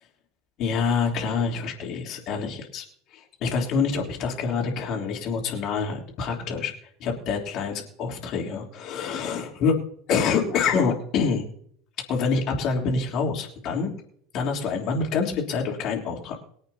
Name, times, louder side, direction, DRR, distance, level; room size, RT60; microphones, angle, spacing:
voice 1, 0.6-2.8 3.1-6.7 7.0-9.8 10.1-11.4 12.1-13.9 14.3-16.4, left 5 dB, 45° left, 0 dB, 3.4 m, -26 dB
23.5 x 8.7 x 2.9 m, 0.64 s
figure-of-eight pair, 75°, 0 cm